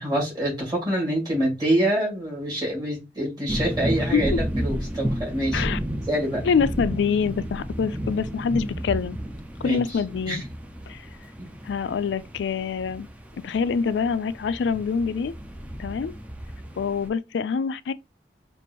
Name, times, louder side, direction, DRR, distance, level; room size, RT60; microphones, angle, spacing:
voice 1, 0.0-5.6 6.1-6.4 9.6-10.0 10.3-10.4 11.4-11.5, right 1 dB, 25° right, 2.1 m, -26 dB
sound 1, 3.5-17.1, equal, 10° right, 0.4 m, -32 dB
voice 2, 6.4-9.2 9.6-10.4 10.9-11.1 11.6-13.1 13.4-15.3 15.8-16.1 16.8-17.9, left 6 dB, 85° left, 0.3 m, -25 dB
4.4 x 2.6 x 2.9 m
head